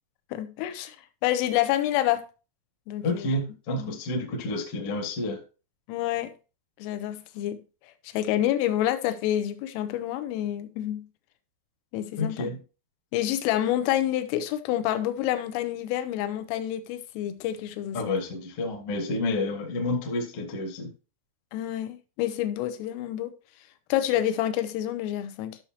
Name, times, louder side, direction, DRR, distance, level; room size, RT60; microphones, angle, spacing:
voice 1, 0.3-1.0 1.2-2.3 2.9-3.3 3.8-4.0 5.9-6.3 6.8-7.6 8.0-11.0 11.9-12.5 13.1-18.2 21.5-23.3 23.9-25.6, left 12 dB, 85° left, 3.4 m, -28 dB
voice 2, 3.0-5.4 12.2-12.6 17.9-20.9, left 2 dB, 50° left, 1.7 m, -29 dB
13.0 x 6.6 x 2.9 m
omnidirectional pair, 5.8 m